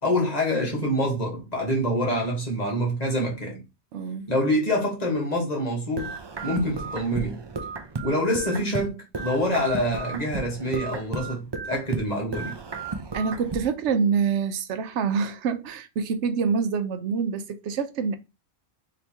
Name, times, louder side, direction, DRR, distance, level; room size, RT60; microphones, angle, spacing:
voice 1, 0.0-3.6 4.3-6.1 6.4-7.4 8.0-12.5, equal, 35° left, 1.5 m, -26 dB
voice 2, 3.9-4.3 13.1-18.2, right 6 dB, 80° right, 0.9 m, -26 dB
sound 1, 6.0-8.9 9.1-12.1 12.3-13.7, right 4 dB, 40° right, 0.4 m, -34 dB
3.4 x 2.9 x 4.3 m
omnidirectional pair, 1.2 m